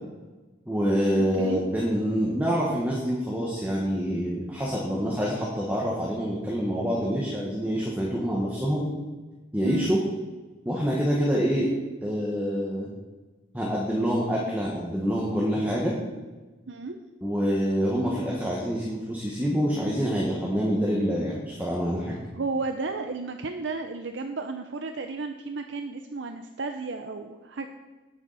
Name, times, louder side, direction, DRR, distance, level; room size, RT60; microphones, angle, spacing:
voice 1, 0.7-8.9 9.5-10.0 10.6-11.7 12.0-12.9 13.5-16.0 17.2-22.1, equal, 10° right, -3 dB, 1.5 m, -26 dB
voice 2, 1.2-1.6 9.6-9.9 16.7-17.0 22.3-27.7, right 4 dB, 70° right, 6 dB, 0.6 m, -33 dB
18.0 x 7.2 x 4.2 m, 1.2 s
head